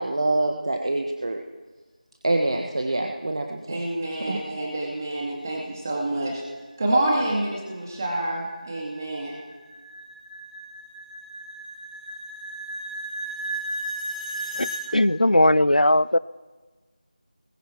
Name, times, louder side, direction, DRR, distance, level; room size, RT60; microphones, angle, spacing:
voice 1, 0.0-1.4 2.2-3.8 4.3-4.4, right 2 dB, 40° right, 3 dB, 1.4 m, -25 dB
voice 2, 3.7-6.4 6.8-9.4, right 1 dB, 25° right, -2 dB, 2.2 m, -27 dB
sound 1, 7.7-14.8, right 2 dB, ahead, 2.8 m, -35 dB
voice 3, 14.9-16.2, left 1 dB, 75° left, 20 dB, 0.6 m, -18 dB
27.5 x 21.5 x 4.6 m, 1.3 s
figure-of-eight pair, 170°, 4 cm